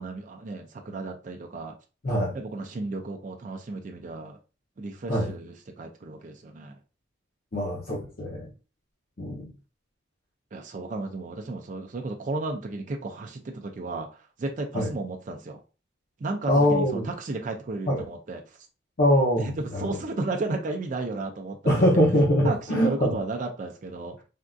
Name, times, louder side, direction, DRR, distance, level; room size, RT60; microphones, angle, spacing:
voice 1, 0.0-1.8 2.3-4.4 4.8-6.8 10.5-14.1 14.4-15.6 16.2-18.4 19.4-22.2 22.4-24.2, right 2 dB, 40° right, 0.4 m, -34 dB
voice 2, 2.0-2.3 5.1-5.3 7.5-8.5 9.2-9.5 14.7-14.9 16.5-17.1 17.9-18.1 19.0-19.9 21.6-23.1, equal, 50° left, 0.7 m, -23 dB
3.5 x 2.5 x 2.3 m
head